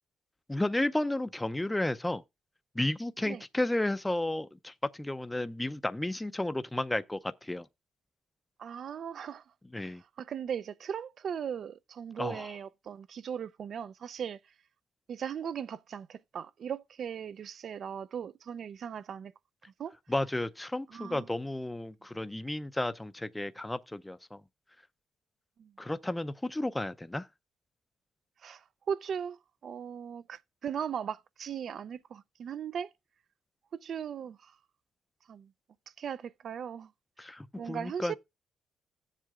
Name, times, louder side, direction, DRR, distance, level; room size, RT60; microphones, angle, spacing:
voice 1, 0.5-2.2 2.8-7.7 9.7-10.0 12.2-12.5 20.1-24.4 25.8-27.2 37.2-38.1, left 1 dB, 10° left, 0.5 m, -32 dB
voice 2, 8.6-9.4 9.8-14.4 15.1-19.3 19.8-19.9 20.9-21.3 25.6-25.7 28.4-29.4 29.6-32.9 33.7-34.5 35.3-35.5 36.0-36.9 37.6-38.1, right 8 dB, 60° right, 0.5 m, -38 dB
17.5 x 7.5 x 2.4 m
cardioid pair, 90°, 0 cm